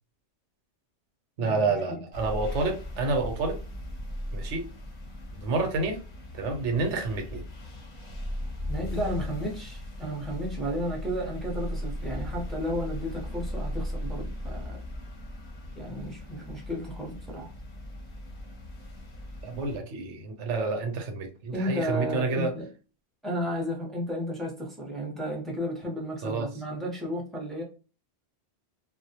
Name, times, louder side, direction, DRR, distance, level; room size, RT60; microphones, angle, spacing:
voice 1, 1.4-3.6 4.3-4.7 5.3-6.0 6.4-7.4 19.4-22.6 26.2-26.5, right 3 dB, 80° right, 5 dB, 1.0 m, -29 dB
sound 1, 2.1-19.8, left 1 dB, 45° left, 0.7 m, -37 dB
voice 2, 8.7-14.8 15.8-17.5 21.5-22.7 23.2-27.6, equal, ahead, -2 dB, 0.5 m, -33 dB
2.4 x 2.1 x 2.7 m, 0.35 s
omnidirectional pair, 1.2 m